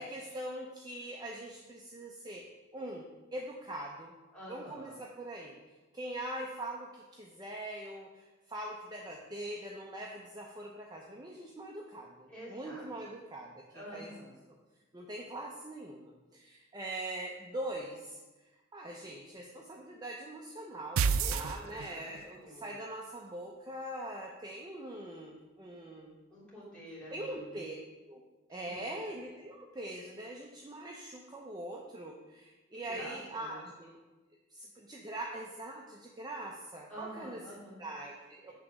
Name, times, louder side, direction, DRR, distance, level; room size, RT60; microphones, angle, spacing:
voice 1, 0.0-2.5 2.7-4.1 4.5-14.1 14.5-14.6 14.9-18.2 18.7-26.1 27.1-27.7 28.1-28.2 28.5-34.0 34.5-37.4 37.8-38.5, right 1 dB, 20° right, -1 dB, 0.5 m, -42 dB
voice 2, 4.3-5.0 12.3-13.2 13.7-14.3 21.2-22.7 26.3-27.6 28.5-28.9 32.9-33.6 36.9-37.8, equal, 5° left, -8 dB, 2.8 m, -48 dB
sound 1, 21.0-22.2, right 6 dB, 80° right, 0.4 m, -29 dB
8.2 x 3.7 x 6.0 m, 1.2 s
head